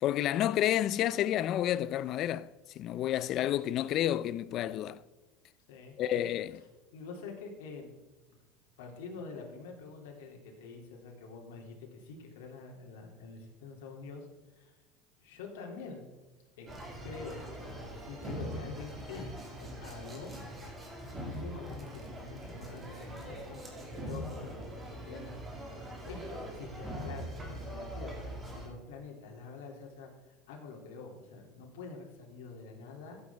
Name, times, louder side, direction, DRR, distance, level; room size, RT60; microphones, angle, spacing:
voice 1, 0.0-2.5 2.8-5.0 6.0-6.6, left 12 dB, 45° left, 0.4 m, -30 dB
voice 2, 6.9-7.9 8.8-14.3 14.6-14.7 15.2-16.1 16.6-16.7 17.0-20.3 21.3-25.8 26.1-30.1 30.5-33.2, left 4 dB, 85° left, 2.6 m, -46 dB
sound 1, 16.7-28.7, equal, 15° right, 2.2 m, -42 dB
14.0 x 7.9 x 3.4 m
supercardioid pair, 145°, 0 cm